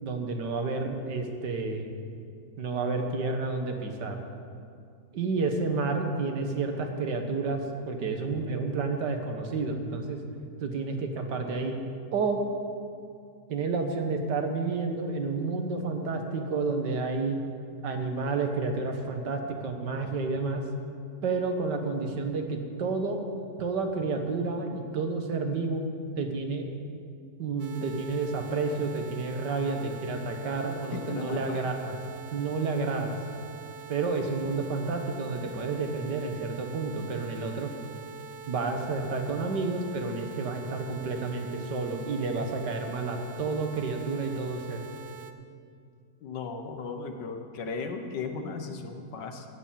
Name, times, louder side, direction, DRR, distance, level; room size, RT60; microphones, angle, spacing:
voice 1, 0.0-1.9 2.6-4.2 5.1-7.6 7.9-10.2 10.6-11.8 12.1-12.4 13.5-17.4 17.8-20.6 21.2-23.2 23.6-25.9 26.2-26.7 27.4-31.9 32.3-33.2 33.9-37.7 38.5-44.8, right 3 dB, 80° right, 4 dB, 1.9 m, -30 dB
sound 1, 27.6-45.3, right 7 dB, 60° right, 0.9 m, -45 dB
voice 2, 30.9-31.6 46.2-49.5, left 4 dB, 90° left, 5 dB, 1.7 m, -36 dB
16.0 x 6.9 x 7.5 m, 2.3 s
omnidirectional pair, 1.8 m